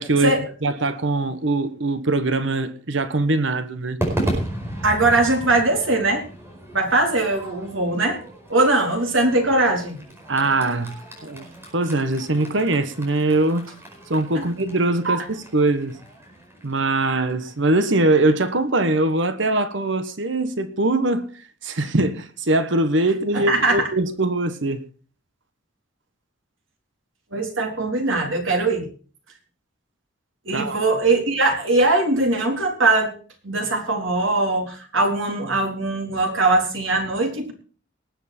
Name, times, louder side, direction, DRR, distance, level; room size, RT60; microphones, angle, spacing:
voice 1, 0.0-4.0 10.3-11.5 11.7-13.6 14.1-16.0 16.6-21.3 21.6-24.8 30.5-30.8, right 2 dB, 65° right, 1.3 m, -22 dB
Crowd / Fireworks, 4.0-18.4, right 1 dB, 15° right, 4.7 m, -35 dB
voice 2, 4.8-6.2 6.7-8.2 8.5-10.0 14.4-14.5 15.0-15.2 23.3-23.9 27.3-28.9 30.5-33.1 33.4-37.5, right 2 dB, 90° right, 3.9 m, -21 dB
19.5 x 8.1 x 4.4 m
head